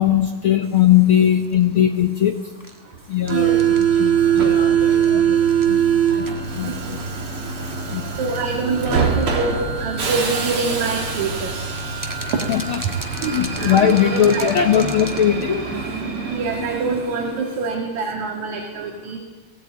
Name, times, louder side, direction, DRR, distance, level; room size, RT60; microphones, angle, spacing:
voice 1, 0.0-2.3 3.1-5.4 5.7-5.8 6.1-7.0 7.9-8.2 12.5-12.8 13.2-15.7, left 10 dB, 70° left, 5 dB, 1.3 m, -19 dB
sound 1, 0.6-18.1, right 1 dB, 20° right, 0.6 m, -42 dB
Subway metro underground, 3.3-17.6, right 7 dB, 45° right, 2.8 m, -22 dB
voice 2, 6.6-7.0 8.2-11.5 12.8-12.9 13.2-14.5 16.3-19.2, right 4 dB, 65° right, 1 dB, 3.2 m, -26 dB
18.0 x 17.0 x 9.1 m, 1.2 s
omnidirectional pair, 3.6 m